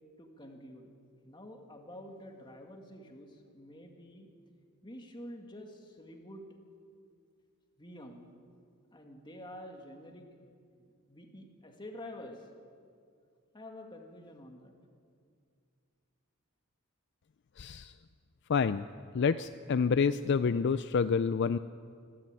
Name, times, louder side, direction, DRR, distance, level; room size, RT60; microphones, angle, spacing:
voice 1, 0.2-1.0 1.2-4.3 4.8-6.5 7.8-8.2 8.9-10.5 11.1-12.5 13.5-14.7, left 1 dB, 20° left, 2 dB, 2.2 m, -48 dB
voice 2, 17.6-17.9 18.5-18.8 19.1-21.6, left 5 dB, 55° left, 12 dB, 0.4 m, -28 dB
24.0 x 12.5 x 9.0 m, 2.3 s
head